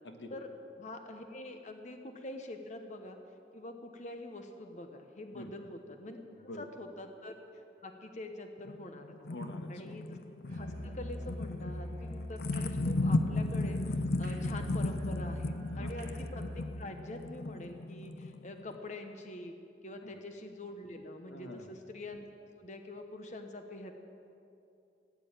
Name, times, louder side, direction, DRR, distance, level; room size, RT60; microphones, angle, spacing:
voice 1, 0.0-0.4 5.3-5.5 6.3-6.7 9.2-10.0 14.2-14.4 15.8-15.9 20.0-20.2 21.3-21.7, left 1 dB, 90° left, 5 dB, 1.4 m, -46 dB
voice 2, 0.8-3.2 3.5-9.2 9.7-10.2 10.5-19.5 19.8-23.9, left 2 dB, 40° left, 5 dB, 1.0 m, -45 dB
sound 1, 8.7-18.8, left 2 dB, 60° left, 0.6 m, -35 dB
Musical instrument, 10.4-16.8, equal, 50° right, 3.4 m, -42 dB
17.0 x 9.4 x 9.0 m, 2.7 s
head